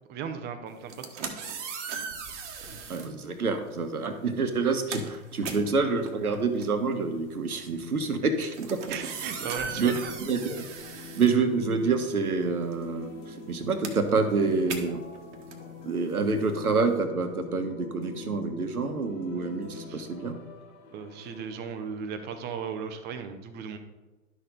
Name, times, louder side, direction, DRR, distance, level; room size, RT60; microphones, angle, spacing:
voice 1, 0.1-0.9 1.4-1.5 1.8-2.1 4.6-4.7 8.9-10.1 19.7-20.0 20.9-23.8, right 6 dB, 25° right, 8 dB, 0.8 m, -37 dB
sound 1, 0.8-3.1 4.0-4.2 4.5-12.1 12.3-17.0, right 6 dB, 55° right, 1.4 m, -39 dB
voice 2, 2.9-8.9 9.8-9.9 10.2-10.6 11.2-13.1 13.5-15.0 15.8-20.4, right 4 dB, 80° right, 7 dB, 1.3 m, -27 dB
sound 2, 9.2-21.9, left 4 dB, 35° left, 1.4 m, -45 dB
11.0 x 6.4 x 3.9 m, 1.1 s
figure-of-eight pair, 110°, 43 cm